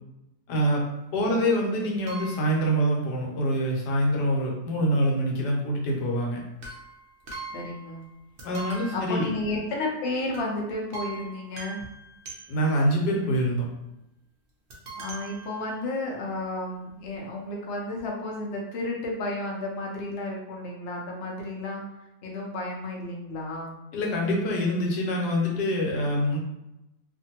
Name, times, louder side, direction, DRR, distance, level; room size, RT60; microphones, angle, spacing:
voice 1, 0.5-0.8 1.1-6.4 8.4-9.3 12.5-13.7 23.9-26.4, equal, 85° left, -1 dB, 1.3 m, -25 dB
voice 2, 1.1-1.9 7.5-8.1 8.9-11.8 15.0-21.8 22.2-23.7, left 2 dB, 60° left, -2 dB, 0.7 m, -32 dB
sound 1, 2.1-2.8 6.6-8.1 8.4-9.9 10.3-10.6 10.9-12.9 14.7-16.2 16.9-17.0 17.1-17.2, right 4 dB, 70° right, 0.5 m, -42 dB
2.6 x 2.5 x 2.8 m, 0.91 s
omnidirectional pair, 1.8 m